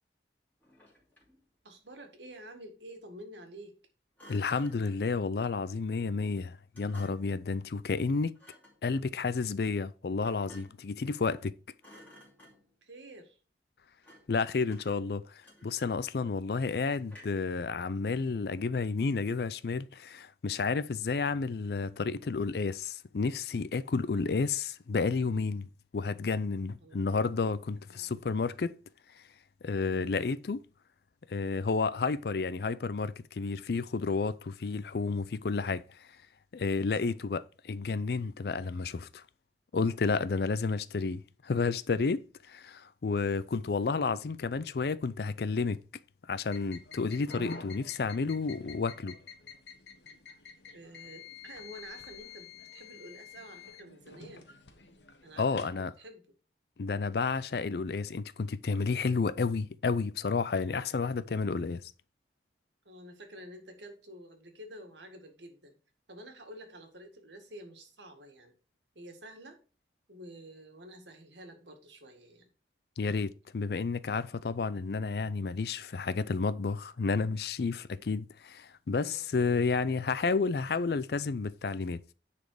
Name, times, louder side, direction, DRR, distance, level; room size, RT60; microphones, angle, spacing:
Thump thud, 0.6-1.4 4.2-5.1 6.7-7.4 8.3-8.8 10.2-10.9 11.3-11.5 11.8-12.8 14.0-14.4 14.7-16.1 17.1-17.5, equal, 10° left, 2.7 m, -55 dB
voice 1, 1.6-3.8 12.8-13.4 26.8-27.0 27.7-28.2 29.9-30.3 50.7-54.5 55.2-56.2 59.1-59.3 60.7-61.0 62.9-65.8 66.1-68.5 69.0-69.6 70.1-72.5 78.9-79.6, right 1 dB, 85° right, 1.9 m, -49 dB
voice 2, 4.3-8.3 8.8-11.5 14.3-25.7 25.9-28.8 29.6-30.6 31.3-36.1 36.5-39.2 39.7-45.8 46.3-49.1 55.4-55.9 56.8-61.9 73.0-82.0, left 4 dB, 65° left, 0.4 m, -31 dB
sound 1, 46.5-55.8, left 4 dB, 85° left, 1.2 m, -48 dB
9.8 x 4.3 x 4.7 m
head